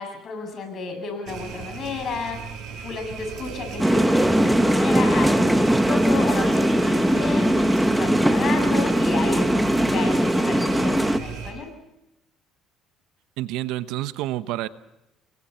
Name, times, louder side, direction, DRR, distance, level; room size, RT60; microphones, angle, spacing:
voice 1, 0.0-11.7, left 5 dB, 45° left, 5 dB, 7.5 m, -32 dB
sound 1, 1.2-11.5, right 6 dB, 60° right, 7.5 m, -37 dB
sound 2, 3.8-11.2, right 1 dB, 5° right, 1.4 m, -20 dB
voice 2, 13.4-14.7, right 15 dB, 80° right, 13 dB, 1.0 m, -28 dB
29.5 x 22.5 x 4.4 m, 0.94 s
cardioid pair, 125°, 0 cm